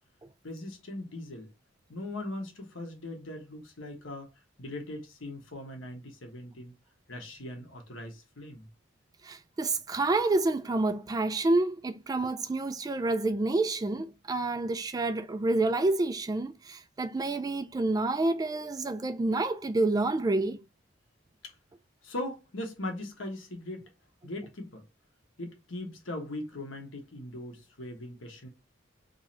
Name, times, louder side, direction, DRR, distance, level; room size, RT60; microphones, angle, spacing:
voice 1, 0.4-1.5 1.9-4.3 4.6-6.7 7.1-8.7 21.4-21.5 22.0-23.9 24.2-24.8 25.4-28.5, left 1 dB, 75° left, 1.2 m, -40 dB
voice 2, 9.2-20.6, right 2 dB, 20° right, 0.3 m, -28 dB
3.7 x 3.0 x 2.7 m
head